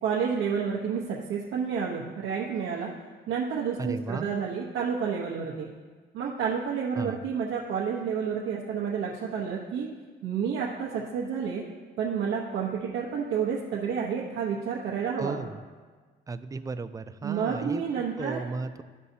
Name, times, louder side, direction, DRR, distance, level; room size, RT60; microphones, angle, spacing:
voice 1, 0.0-2.9 3.3-5.7 6.1-9.9 10.2-11.6 12.0-15.4 17.2-18.4, right 6 dB, 85° right, -4 dB, 0.9 m, -30 dB
voice 2, 3.8-4.3 6.9-7.2 15.2-15.6 16.3-18.8, right 4 dB, 15° right, 11 dB, 0.4 m, -35 dB
12.5 x 5.5 x 2.7 m, 1.4 s
cardioid pair, 90°, 20 cm